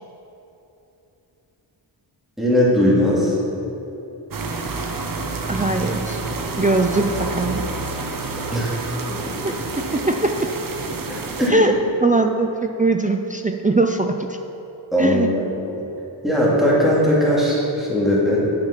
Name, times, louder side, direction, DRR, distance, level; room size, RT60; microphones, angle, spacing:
voice 1, 2.4-3.3 8.5-8.7 9.1-9.2 11.4-11.7 14.9-15.5 15.7-15.8 16.2-18.4, equal, ahead, -7 dB, 2.4 m, -18 dB
sound 1, 4.3-11.5, right 3 dB, 45° right, 0.8 m, -28 dB
voice 2, 5.5-6.2 6.6-7.6 9.4-9.5 9.9-10.5 11.5-11.7 12.0-14.2 15.0-15.3, right 2 dB, 20° right, 4 dB, 0.3 m, -20 dB
9.8 x 7.1 x 5.7 m, 3.0 s
wide cardioid pair, 140°, 48 cm